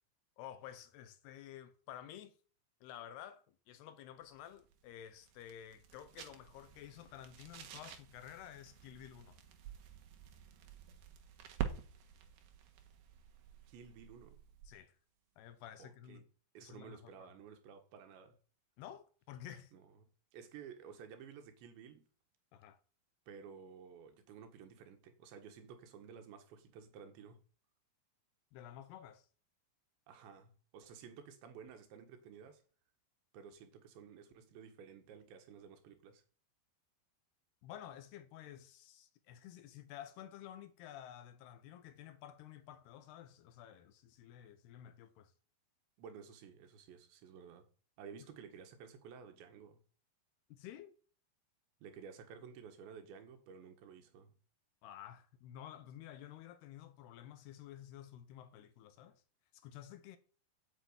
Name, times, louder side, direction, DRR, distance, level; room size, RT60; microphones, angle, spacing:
voice 1, 0.4-2.4 2.8-9.4 14.7-15.0 15.4-16.3 16.6-17.3 18.8-19.7 22.5-22.8 28.5-29.3 37.6-45.3 50.5-51.0 54.8-59.2 59.5-60.2, left 11 dB, 75° left, 2.7 m, -52 dB
sound 1, 4.2-14.9, right 9 dB, 65° right, 2.9 m, -49 dB
voice 2, 13.7-14.4 15.8-16.3 16.6-18.4 19.7-19.8 20.3-22.0 23.3-27.4 30.1-32.6 33.3-36.2 46.0-47.7 48.0-49.8 51.8-54.4, right 7 dB, 80° right, 3.8 m, -53 dB
9.7 x 7.6 x 8.8 m
omnidirectional pair, 5.1 m